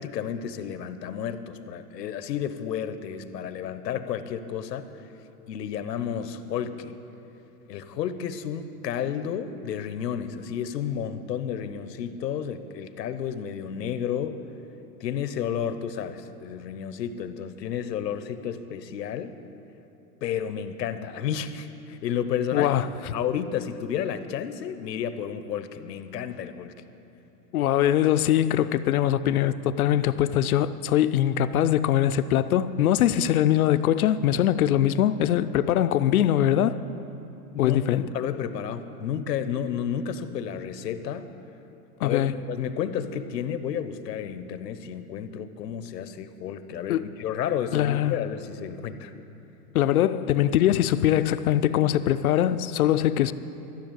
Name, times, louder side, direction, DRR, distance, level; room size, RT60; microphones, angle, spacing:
voice 1, 0.0-4.9 5.5-6.9 7.7-14.4 15.0-19.3 20.2-22.7 23.1-26.7 37.5-41.3 42.0-42.2 42.5-49.1, left 8 dB, 85° left, 1.0 m, -31 dB
voice 2, 22.5-22.9 27.5-36.8 37.6-38.1 42.0-42.3 46.9-47.0 47.7-48.2 49.7-53.3, left 11 dB, 65° left, 0.5 m, -22 dB
13.5 x 7.1 x 9.1 m
supercardioid pair, 175°, 48 cm